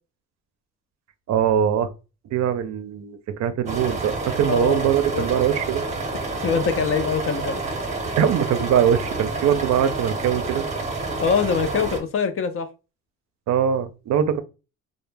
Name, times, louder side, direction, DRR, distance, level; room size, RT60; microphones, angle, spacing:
voice 1, 1.3-1.9 2.3-5.8 8.2-10.7 13.5-14.4, right 9 dB, 60° right, 0.5 m, -22 dB
sound 1, 3.7-12.0, right 3 dB, 20° right, 0.7 m, -29 dB
voice 2, 4.5-5.3 6.4-7.6 11.2-12.7, left 6 dB, 45° left, 0.4 m, -23 dB
2.1 x 2.0 x 3.1 m
cardioid pair, 90°, 30 cm